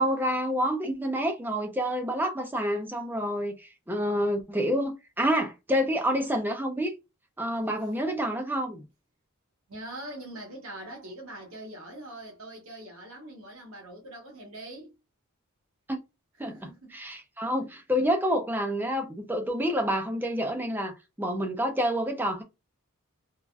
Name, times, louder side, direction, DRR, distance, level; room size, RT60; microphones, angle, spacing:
voice 1, 0.0-6.9 7.4-8.8 15.9-16.0 16.4-16.5 16.9-22.4, equal, 10° right, 0.4 m, -28 dB
voice 2, 9.7-14.9 16.4-17.0, right 1 dB, 70° right, 1.0 m, -43 dB
3.3 x 2.4 x 2.2 m
head